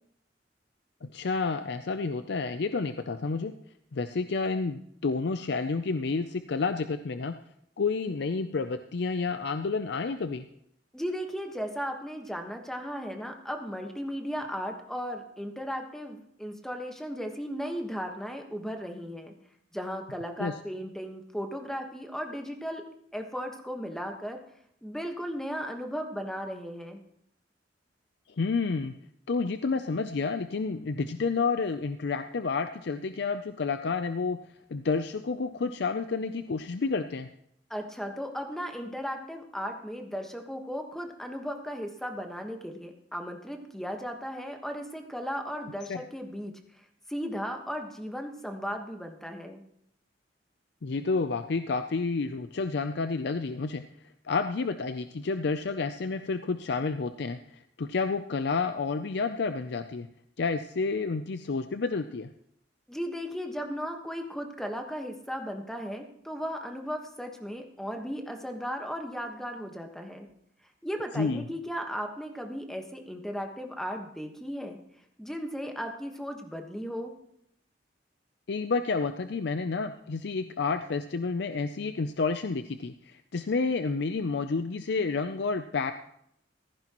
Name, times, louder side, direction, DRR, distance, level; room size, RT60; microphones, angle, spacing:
voice 1, 1.0-3.5 3.9-7.3 7.8-10.5 20.4-20.5 28.4-28.9 29.3-34.4 34.7-37.3 45.9-46.0 50.8-53.8 54.2-60.1 60.4-62.3 71.2-71.5 78.5-85.9, left 4 dB, 65° left, 9 dB, 0.5 m, -30 dB
voice 2, 10.9-19.3 19.7-22.8 23.1-24.4 24.8-27.0 37.7-46.5 47.1-49.6 62.9-70.3 70.8-74.8 75.2-77.1, equal, ahead, 4 dB, 1.3 m, -36 dB
15.0 x 14.5 x 3.0 m, 0.73 s
head